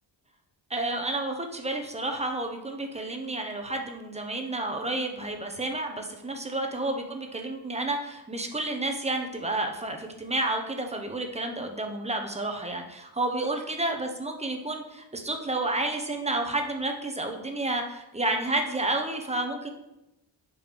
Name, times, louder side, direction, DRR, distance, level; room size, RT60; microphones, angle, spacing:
voice 1, 0.7-19.7, right 2 dB, 15° right, 3 dB, 0.7 m, -30 dB
5.1 x 4.6 x 5.2 m, 0.93 s
wide cardioid pair, 155°, 44 cm